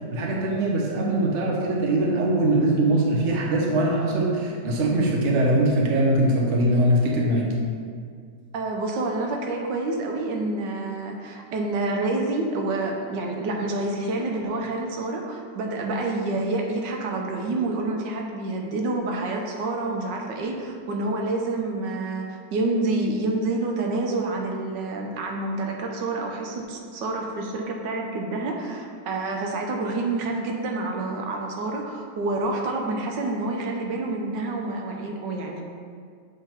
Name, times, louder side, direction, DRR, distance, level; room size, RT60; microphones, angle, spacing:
voice 1, 0.1-7.5, right 1 dB, 50° right, -1 dB, 1.1 m, -22 dB
voice 2, 8.5-35.6, right 2 dB, 90° right, 1 dB, 1.4 m, -28 dB
8.0 x 3.7 x 4.4 m, 2.1 s
omnidirectional pair, 1.8 m